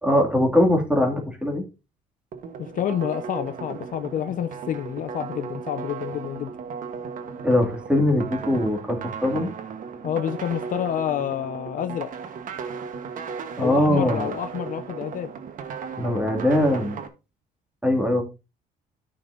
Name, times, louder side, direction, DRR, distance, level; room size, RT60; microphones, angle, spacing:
voice 1, 0.0-1.6 7.4-9.5 13.6-14.3 16.0-17.0 17.8-18.2, left 1 dB, 5° right, 2.4 m, -21 dB
sound 1, 2.3-17.1, right 6 dB, 55° right, 1.3 m, -36 dB
voice 2, 2.6-6.5 10.0-12.1 13.6-15.3, left 10 dB, 50° left, 0.6 m, -28 dB
12.5 x 6.0 x 2.7 m
cardioid pair, 110°, 17 cm